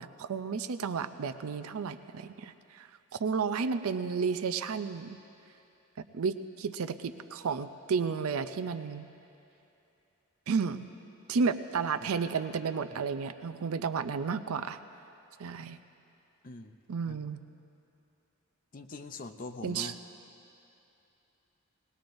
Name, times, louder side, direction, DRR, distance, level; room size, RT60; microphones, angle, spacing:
voice 1, 0.0-2.9 3.2-5.2 6.0-9.1 10.5-10.9 11.3-14.8 15.4-15.8 16.9-17.4 19.6-19.9, right 5 dB, 80° right, 11 dB, 0.5 m, -32 dB
voice 2, 16.4-16.8 17.1-17.2 18.7-20.0, left 3 dB, 40° left, 6 dB, 0.5 m, -43 dB
21.0 x 18.5 x 2.6 m, 2.8 s
head